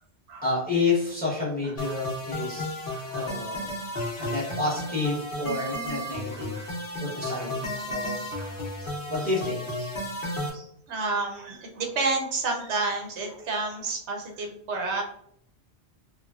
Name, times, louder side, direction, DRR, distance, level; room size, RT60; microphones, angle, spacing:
voice 1, 0.4-2.8 3.1-3.7 4.2-6.6 7.0-8.2 9.1-9.6, left 3 dB, 10° left, -5 dB, 0.9 m, -29 dB
sound 1, 1.8-10.5, left 1 dB, 55° left, 0.9 m, -33 dB
voice 2, 2.9-3.3 3.8-4.3 6.3-6.9 7.4-7.5 7.7-8.9 9.8-9.9 10.3-15.0, right 3 dB, 80° right, 1 dB, 0.9 m, -32 dB
3.3 x 2.1 x 2.3 m, 0.71 s
omnidirectional pair, 1.1 m